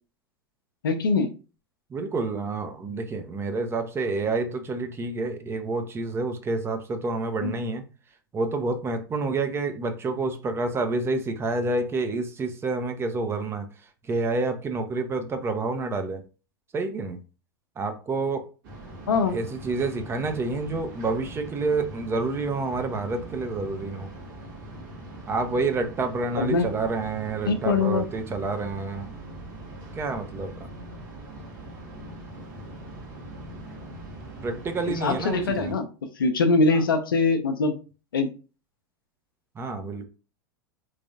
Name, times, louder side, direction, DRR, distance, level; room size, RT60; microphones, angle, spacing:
voice 1, 0.8-1.3 7.4-7.5 19.1-19.4 26.4-26.7 27.5-28.1 34.9-35.8 36.2-37.7 38.1-38.3, left 3 dB, 75° left, 7 dB, 0.6 m, -23 dB
voice 2, 1.9-7.8 8.3-13.7 14.1-16.2 16.7-17.2 17.8-18.5 19.3-24.1 25.3-29.1 29.9-30.7 34.4-35.7 36.7-36.8 39.6-40.1, right 3 dB, 20° right, 6 dB, 0.6 m, -28 dB
sound 1, 18.6-35.7, right 1 dB, 60° right, 1.5 m, -42 dB
3.5 x 3.2 x 2.6 m, 0.34 s
figure-of-eight pair, 90°, 12 cm